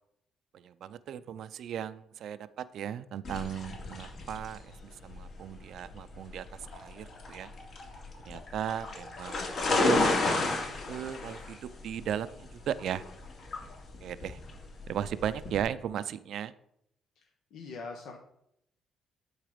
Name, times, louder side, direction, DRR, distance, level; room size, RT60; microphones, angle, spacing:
voice 1, 0.5-7.5 8.3-9.4 9.7-13.0 14.0-14.4 14.9-16.5, right 9 dB, 75° right, 14 dB, 0.4 m, -37 dB
sound 1, 3.2-15.6, left 2 dB, 60° left, 2.6 m, -33 dB
voice 2, 17.5-18.2, left 4 dB, 80° left, 1 dB, 1.1 m, -42 dB
11.0 x 4.0 x 5.0 m, 0.74 s
cardioid pair, 90°, 0 cm